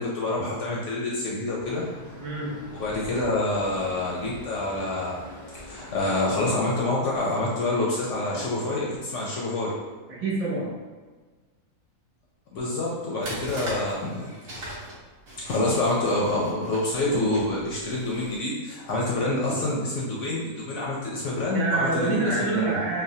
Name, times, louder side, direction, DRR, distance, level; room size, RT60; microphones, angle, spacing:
voice 1, 0.0-1.8 2.7-5.2 5.5-9.7 12.5-14.8 15.4-22.8, left 2 dB, 65° left, -4 dB, 0.8 m, -27 dB
Traffic noise roadway noise, 1.6-6.6, left 1 dB, 25° right, 0.4 m, -43 dB
voice 2, 2.2-2.7 10.1-10.8 21.5-23.0, right 3 dB, 70° right, -5 dB, 1.2 m, -27 dB
sound 1, 13.2-18.4, right 1 dB, 50° right, 0.9 m, -40 dB
3.4 x 2.0 x 2.6 m, 1.4 s
omnidirectional pair, 1.6 m